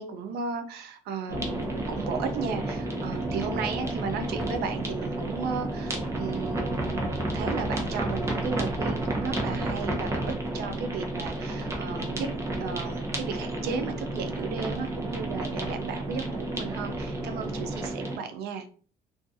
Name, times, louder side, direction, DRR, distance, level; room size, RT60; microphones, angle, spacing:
voice 1, 0.0-12.3 12.6-18.7, right 5 dB, 75° right, 8 dB, 0.5 m, -35 dB
sound 1, 1.3-18.2, right 1 dB, 15° right, 0.7 m, -31 dB
2.5 x 2.3 x 2.5 m, 0.42 s
cardioid pair, 110°, 17 cm